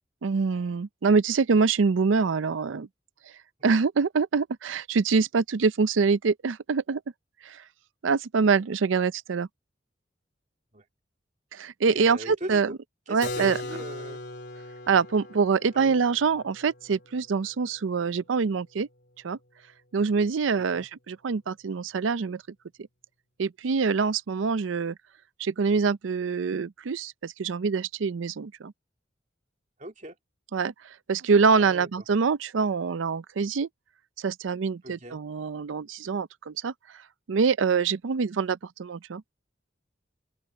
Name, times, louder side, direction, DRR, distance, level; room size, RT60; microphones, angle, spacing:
voice 1, 0.2-2.9 3.6-7.0 7.4-7.6 8.0-9.5 11.5-12.7 13.1-13.6 14.9-18.9 19.2-19.4 19.9-22.4 23.4-24.9 25.4-28.7 30.5-30.7 31.1-33.7 34.2-36.7 37.3-39.2, right 5 dB, 85° right, 0.5 m, -25 dB
voice 2, 11.8-12.8 13.1-14.2 15.7-16.0 20.6-20.9 29.8-30.2 31.5-31.9 34.8-35.2, right 1 dB, 40° right, 3.2 m, -40 dB
Keyboard (musical), 13.2-18.8, left 2 dB, 60° left, 3.6 m, -40 dB
open air
head